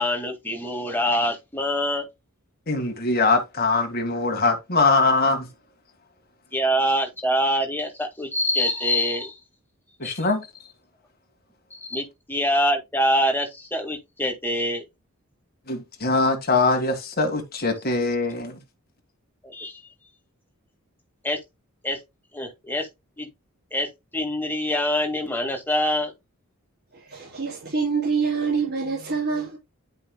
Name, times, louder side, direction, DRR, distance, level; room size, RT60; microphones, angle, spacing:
voice 1, 0.0-2.1 6.5-9.4 10.0-10.2 11.7-14.9 19.4-19.8 21.2-21.4 21.8-22.0 22.3-22.9 23.2-23.3 23.7-26.1, equal, 10° left, 2.0 m, -25 dB
voice 2, 2.7-5.5 10.0-10.5 15.7-18.6, left 3 dB, 45° left, 1.8 m, -22 dB
voice 3, 26.9-29.6, right 5 dB, 45° right, 3.7 m, -26 dB
11.0 x 5.3 x 2.3 m
head